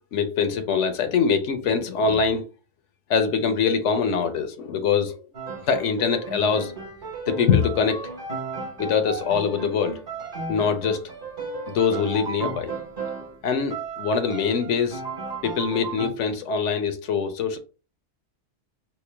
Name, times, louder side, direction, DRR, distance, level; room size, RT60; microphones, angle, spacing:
voice 1, 0.1-2.4 3.1-5.3 5.7-6.7 7.3-8.1 8.8-10.0 10.5-11.1 11.7-12.7 13.2-15.0 15.4-17.6, left 6 dB, 75° left, 0.9 m, -23 dB
Piano, 5.3-13.4 13.7-16.1, right 4 dB, 45° right, 1.2 m, -35 dB
4.4 x 2.1 x 3.3 m
omnidirectional pair, 1.2 m